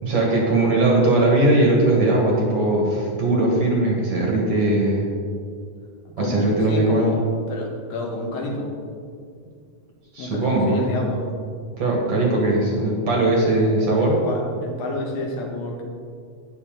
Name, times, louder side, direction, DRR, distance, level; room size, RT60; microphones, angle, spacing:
voice 1, 0.0-5.1 6.2-7.1 10.1-11.0 11.8-14.2, right 2 dB, 50° right, -2 dB, 2.1 m, -19 dB
voice 2, 6.2-7.2 7.5-8.7 10.2-11.2 14.0-15.8, left 1 dB, 80° left, -1 dB, 3.4 m, -30 dB
12.0 x 10.0 x 3.8 m, 2.2 s
omnidirectional pair, 4.1 m